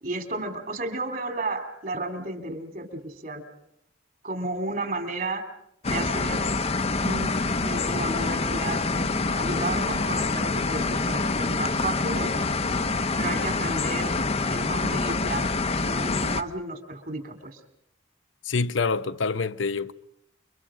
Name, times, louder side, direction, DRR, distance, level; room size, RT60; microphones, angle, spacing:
voice 1, 0.0-3.4 4.2-5.5 5.8-6.5 7.0-12.3 13.2-14.1 14.5-15.5 15.8-17.6, right 2 dB, 45° right, 3.0 m, -33 dB
sound 1, 5.8-16.4, left 3 dB, 35° left, 0.9 m, -26 dB
voice 2, 18.4-19.9, left 4 dB, 75° left, 0.8 m, -26 dB
29.5 x 24.0 x 5.0 m
head